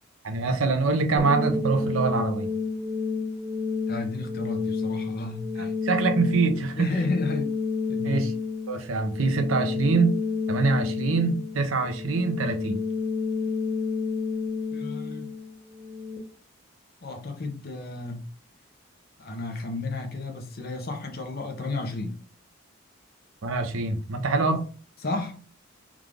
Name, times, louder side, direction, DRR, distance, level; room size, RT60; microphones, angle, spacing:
voice 1, 0.2-2.5 5.6-6.9 8.0-8.3 8.7-10.1 10.5-12.8 23.4-24.6, right 3 dB, 75° right, 0.7 m, -24 dB
sound 1, 1.2-16.2, left 4 dB, 10° left, 0.9 m, -30 dB
voice 2, 3.9-5.7 6.8-7.5 7.9-8.2 14.7-15.3 17.0-18.3 19.2-22.2 24.5-24.6 25.0-25.4, left 2 dB, 50° left, 0.8 m, -32 dB
3.7 x 2.4 x 3.3 m
head